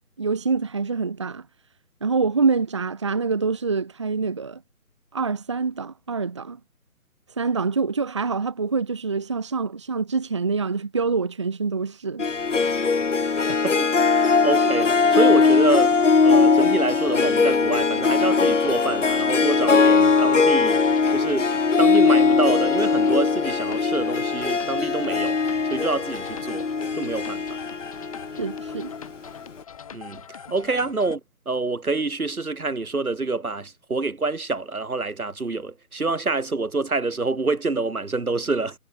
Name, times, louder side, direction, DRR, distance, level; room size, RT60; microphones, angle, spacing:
voice 1, 0.2-1.4 2.0-4.6 5.1-6.6 7.4-12.2 28.4-28.9, right 4 dB, 20° right, 1.6 m, -25 dB
Harp, 12.2-29.0, left 4 dB, 55° left, 1.7 m, -20 dB
voice 2, 13.4-15.9 16.2-20.8 21.1-21.5 21.8-25.4 25.7-26.7 26.9-27.4 29.9-31.2 31.5-38.8, right 3 dB, 75° right, 7.5 m, -27 dB
sound 1, 17.5-31.2, left 8 dB, 25° left, 6.2 m, -44 dB
figure-of-eight pair, 170°, 44 cm